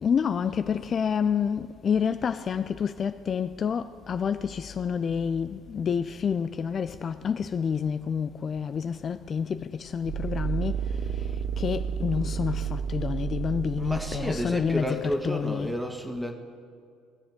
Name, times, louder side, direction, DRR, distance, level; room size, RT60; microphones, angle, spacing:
voice 1, 0.0-15.7, left 7 dB, 40° left, 0.3 m, -29 dB
sound 1, 10.0-14.9, right 7 dB, 60° right, 0.5 m, -31 dB
voice 2, 13.8-16.3, equal, 5° right, 1.7 m, -31 dB
20.5 x 7.2 x 3.6 m
supercardioid pair, 75°, 0 cm